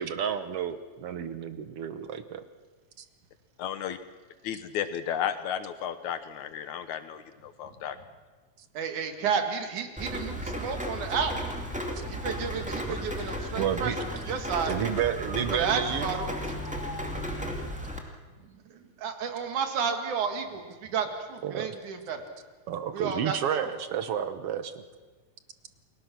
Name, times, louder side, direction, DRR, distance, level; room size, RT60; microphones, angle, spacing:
voice 1, 0.0-2.4 3.0-3.1 12.0-12.1 12.9-13.0 13.6-14.0 14.7-16.1 21.4-21.8 22.7-24.8, right 9 dB, 65° right, 10 dB, 1.7 m, -31 dB
voice 2, 3.6-4.0 4.4-8.0, left 9 dB, 80° left, 11 dB, 2.6 m, -33 dB
voice 3, 8.8-11.3 12.0-14.8 15.5-16.3 18.4-22.3 22.9-23.7, right 6 dB, 90° right, 6 dB, 3.5 m, -32 dB
Rain, 10.0-18.0, equal, 5° right, 1.8 m, -34 dB
29.5 x 21.5 x 6.1 m, 1.4 s
omnidirectional pair, 3.4 m